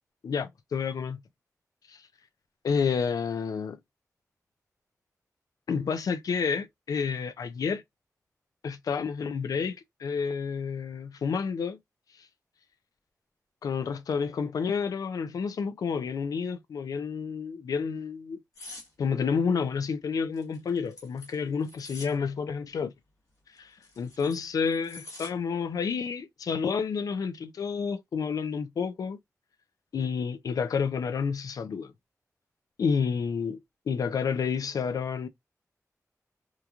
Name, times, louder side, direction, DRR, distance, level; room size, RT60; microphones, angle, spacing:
voice 1, 0.2-1.2 1.9-2.1 2.6-3.8 5.7-7.8 8.6-11.8 12.1-12.3 13.6-18.4 19.0-22.9 23.5-29.2 29.9-31.9 32.8-35.3, left 6 dB, 90° left, 0.3 m, -30 dB
sound 1, 18.5-18.9 20.3-22.1 23.6-25.3 25.7-26.0, left 2 dB, 70° left, 1.2 m, -46 dB
3.0 x 2.4 x 2.3 m
wide cardioid pair, 75°, 6 cm